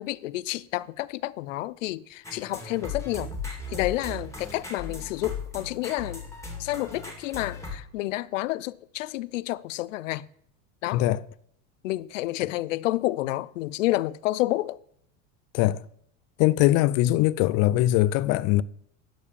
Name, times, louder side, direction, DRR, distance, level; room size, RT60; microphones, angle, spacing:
voice 1, 0.0-6.2 6.6-10.3 10.8-11.0 11.8-14.8, left 17 dB, 90° left, 0.6 m, -30 dB
sound 1, 2.2-7.8, left 3 dB, 10° left, 2.5 m, -37 dB
voice 2, 16.4-18.6, left 15 dB, 45° left, 0.5 m, -21 dB
11.5 x 5.0 x 6.9 m
supercardioid pair, 125°, 37 cm